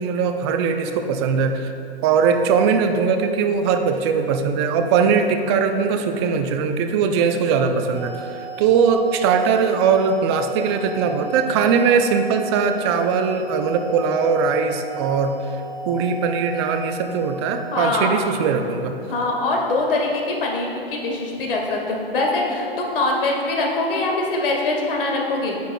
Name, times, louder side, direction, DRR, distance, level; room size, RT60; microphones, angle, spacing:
voice 1, 0.0-1.7 2.0-18.9, right 6 dB, 25° right, 6 dB, 0.4 m, -20 dB
sound 1, 7.9-17.8, right 3 dB, 45° left, 1.3 m, -35 dB
voice 2, 17.7-18.1 19.1-25.5, left 2 dB, 60° left, 0 dB, 1.9 m, -23 dB
11.0 x 9.1 x 2.3 m, 2.7 s
hypercardioid pair, 125°, 31 cm